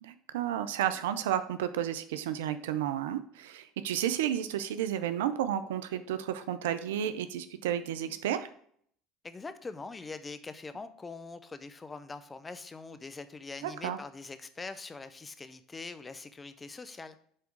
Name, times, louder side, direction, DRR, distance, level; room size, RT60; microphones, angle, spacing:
voice 1, 0.0-8.5 13.6-14.0, right 10 dB, 80° right, 11 dB, 0.5 m, -32 dB
voice 2, 9.2-17.2, left 3 dB, 20° left, 12 dB, 0.7 m, -43 dB
7.6 x 3.6 x 4.5 m, 0.63 s
hypercardioid pair, 80°, 0 cm